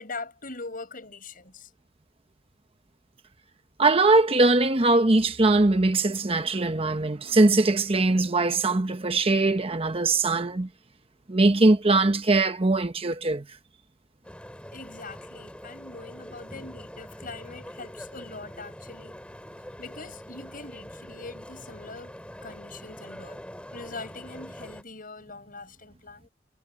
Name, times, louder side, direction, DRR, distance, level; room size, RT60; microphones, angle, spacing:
voice 1, 0.0-1.7 14.7-19.2 19.8-22.1 22.4-23.4 23.7-26.3, left 3 dB, 50° left, 7.0 m, -42 dB
voice 2, 3.8-10.7 11.3-13.4, right 2 dB, 30° right, 0.9 m, -21 dB
sound 1, 14.2-24.8, equal, 5° left, 5.1 m, -44 dB
head